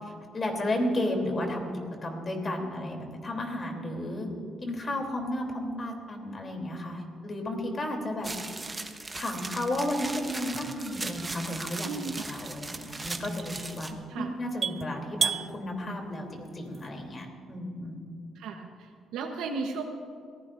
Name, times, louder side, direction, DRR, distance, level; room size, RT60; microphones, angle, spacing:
voice 1, 0.3-1.7 2.0-4.3 4.6-8.3 9.1-11.9 12.3-13.9 14.2-18.0, left 1 dB, 35° left, 2 dB, 3.1 m, -33 dB
sound 1, 8.2-13.9, right 2 dB, 20° right, 1.0 m, -38 dB
sound 2, 9.8-17.1, right 6 dB, 50° right, 0.4 m, -37 dB
voice 2, 11.8-12.3 14.1-14.3 18.3-19.8, right 4 dB, 90° right, 3 dB, 1.0 m, -35 dB
22.0 x 15.5 x 2.6 m, 2.3 s
cardioid pair, 90°, 0 cm